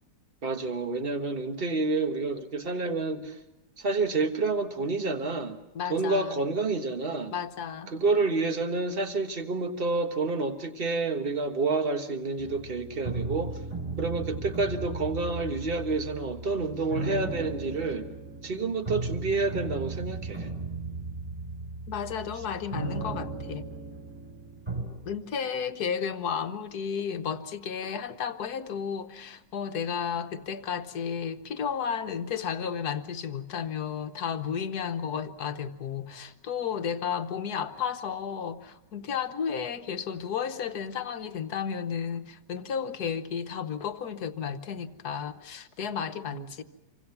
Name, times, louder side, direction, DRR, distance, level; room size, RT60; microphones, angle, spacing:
voice 1, 0.4-3.4 3.8-5.6 5.9-7.3 7.9-13.6 14.0-18.1 18.4-20.5 46.3-46.5, right 3 dB, 35° right, 6 dB, 1.6 m, -29 dB
voice 2, 5.7-6.4 7.3-7.9 21.9-23.6 25.0-46.6, left 7 dB, 65° left, 9 dB, 1.5 m, -33 dB
sound 1, 12.4-24.8, right 3 dB, 15° right, 7.5 m, -36 dB
27.5 x 24.5 x 5.9 m, 0.95 s
omnidirectional pair, 1.8 m